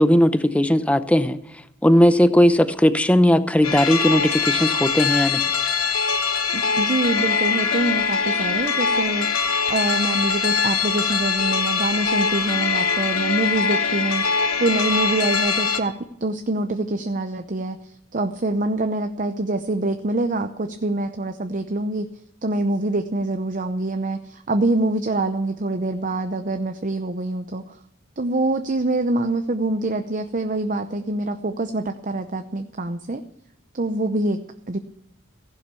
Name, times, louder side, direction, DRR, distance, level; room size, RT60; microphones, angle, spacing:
voice 1, 0.0-1.4 1.8-5.4, equal, 5° left, 11 dB, 0.7 m, -17 dB
sound 1, 3.6-15.8, left 5 dB, 85° left, 1.5 m, -22 dB
voice 2, 6.5-14.2 14.6-22.1 22.4-27.8 28.2-33.2 33.7-34.4 34.7-34.8, right 2 dB, 40° right, 8 dB, 0.7 m, -25 dB
15.5 x 11.0 x 7.0 m, 0.77 s
head